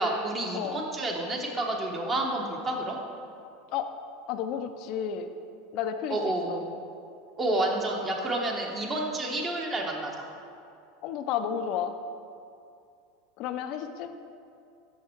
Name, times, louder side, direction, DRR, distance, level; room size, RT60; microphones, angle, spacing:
voice 1, 0.0-3.0 6.1-6.6 7.4-10.1, right 1 dB, 30° right, 0 dB, 1.1 m, -29 dB
voice 2, 4.3-5.3 5.7-6.6 11.0-11.9 13.4-14.1, left 8 dB, 55° left, 8 dB, 0.4 m, -32 dB
6.2 x 5.7 x 4.5 m, 2.5 s
hypercardioid pair, 100°, 0 cm